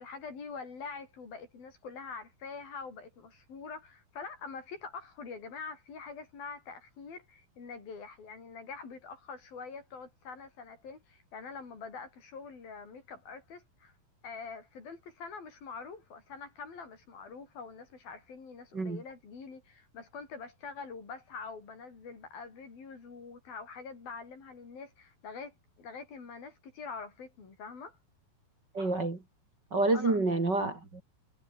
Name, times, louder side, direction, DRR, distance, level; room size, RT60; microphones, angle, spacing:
voice 1, 0.0-13.9 14.2-28.0 29.9-30.2, left 5 dB, 80° left, 7.6 m, -45 dB
voice 2, 28.7-29.2 29.7-31.0, right 2 dB, 30° right, 3.8 m, -28 dB
omnidirectional pair, 4.1 m